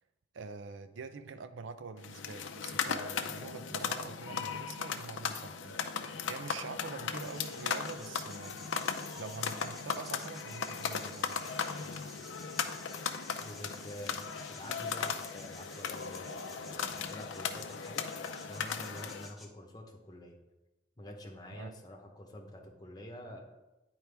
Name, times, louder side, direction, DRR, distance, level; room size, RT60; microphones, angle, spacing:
voice 1, 0.3-11.6 21.5-21.7, right 4 dB, 85° right, 11 dB, 0.5 m, -45 dB
sound 1, 2.0-19.3, left 6 dB, 90° left, 0.5 m, -37 dB
sound 2, 7.2-19.5, left 1 dB, ahead, 0.6 m, -53 dB
voice 2, 13.4-20.4 21.0-23.5, left 1 dB, 20° left, 1 dB, 0.9 m, -48 dB
9.5 x 4.5 x 3.4 m, 1.0 s
head